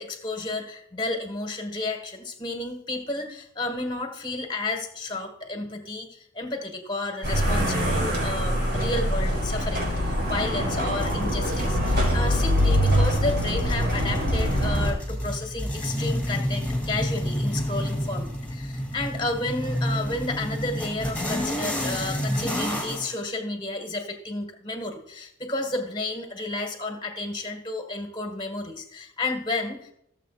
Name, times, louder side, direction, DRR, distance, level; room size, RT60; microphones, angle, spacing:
voice 1, 0.0-29.9, left 2 dB, 25° left, 4 dB, 1.6 m, -32 dB
sound 1, 7.2-14.9, equal, 50° right, 4.2 m, -24 dB
sound 2, 11.0-23.1, equal, 10° left, 2.4 m, -30 dB
17.0 x 7.4 x 2.5 m, 0.73 s
head